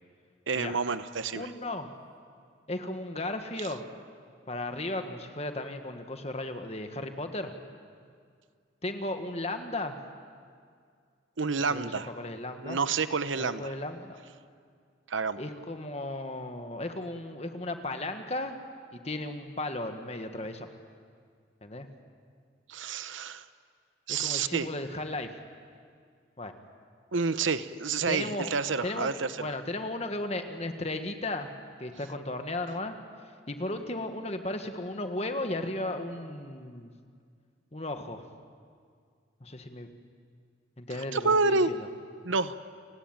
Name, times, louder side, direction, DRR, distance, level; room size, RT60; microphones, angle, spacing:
voice 1, 0.5-1.5 11.4-12.1 12.6-13.7 15.1-15.4 22.7-23.5 24.1-24.7 27.1-29.5 41.1-41.7 42.2-42.6, right 4 dB, 75° right, 13 dB, 0.9 m, -29 dB
voice 2, 1.3-1.9 2.7-3.8 4.5-7.5 8.8-10.0 11.7-11.9 12.2-12.8 13.4-14.2 15.4-18.5 18.9-20.7 21.6-21.9 24.1-25.3 26.4-26.5 28.1-28.5 28.8-29.1 29.4-31.5 31.8-32.9 33.5-36.9 37.7-38.2 39.4-39.9 40.8-41.8, left 2 dB, 30° left, 6 dB, 1.6 m, -35 dB
30.0 x 17.5 x 9.1 m, 2.1 s
head